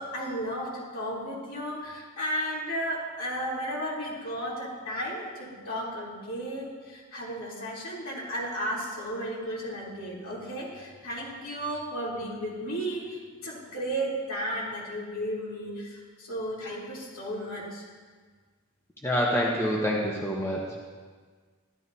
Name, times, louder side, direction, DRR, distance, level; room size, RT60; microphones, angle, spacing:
voice 1, 0.0-17.8, equal, 65° left, -5 dB, 3.3 m, -34 dB
voice 2, 19.0-20.8, equal, 10° left, -3 dB, 1.0 m, -27 dB
13.5 x 12.0 x 2.8 m, 1.5 s
head